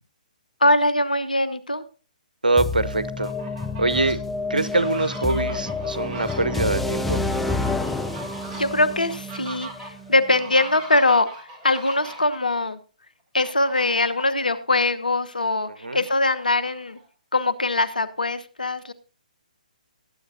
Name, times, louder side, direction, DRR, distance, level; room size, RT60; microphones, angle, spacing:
voice 1, 0.6-1.8 8.5-12.8 13.3-17.0 17.3-18.9, left 2 dB, 80° left, 13 dB, 1.1 m, -22 dB
voice 2, 2.4-3.3 3.8-4.2 4.5-7.2 15.8-16.0, right 2 dB, 80° right, 16 dB, 0.8 m, -23 dB
sound 1, 2.6-10.4, left 3 dB, ahead, 0.7 m, -29 dB
Fowl, 3.0-4.1 4.6-12.4 13.4-14.4 14.9-15.0 15.3-17.1, right 2 dB, 20° right, 2.5 m, -41 dB
18.5 x 8.6 x 2.7 m, 0.37 s
figure-of-eight pair, 130°, 5 cm